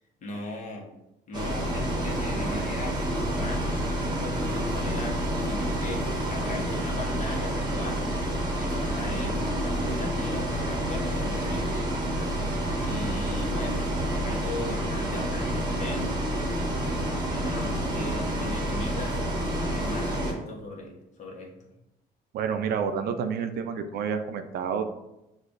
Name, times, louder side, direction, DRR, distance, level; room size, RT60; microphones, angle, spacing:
voice 1, 0.2-0.9 1.3-3.7 4.2-8.1 8.6-11.9 12.8-16.3 17.3-19.2 19.7-21.5, left 2 dB, 45° left, 0 dB, 1.0 m, -38 dB
Bus, 1.3-20.3, right 1 dB, 25° right, 0.9 m, -28 dB
voice 2, 22.3-24.8, right 6 dB, 65° right, 7 dB, 0.5 m, -29 dB
6.4 x 2.4 x 2.5 m, 0.90 s
cardioid pair, 110°, 17 cm